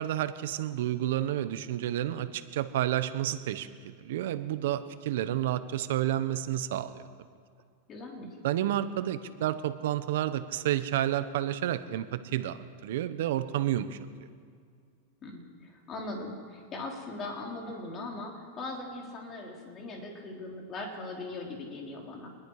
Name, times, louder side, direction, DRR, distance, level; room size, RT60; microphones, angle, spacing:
voice 1, 0.0-3.7 4.0-7.0 8.4-14.0, right 12 dB, 70° right, 12 dB, 1.1 m, -30 dB
voice 2, 7.9-8.4 15.2-22.3, left 2 dB, 30° left, 0 dB, 3.9 m, -40 dB
25.5 x 21.0 x 5.0 m, 2.1 s
supercardioid pair, 145°, 0 cm